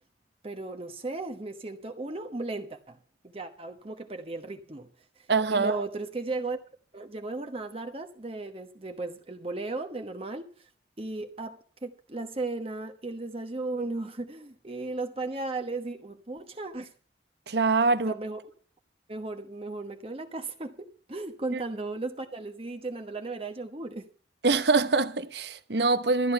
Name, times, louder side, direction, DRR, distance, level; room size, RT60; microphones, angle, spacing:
voice 1, 0.4-3.0 3.2-4.9 5.2-6.6 6.9-10.7 11.0-16.9 17.9-18.4 19.1-24.1, right 2 dB, 30° right, 1.1 m, -36 dB
voice 2, 5.3-5.8 17.5-18.1 21.5-21.6 24.4-26.3, right 3 dB, 70° right, 0.9 m, -24 dB
13.5 x 10.5 x 5.7 m
head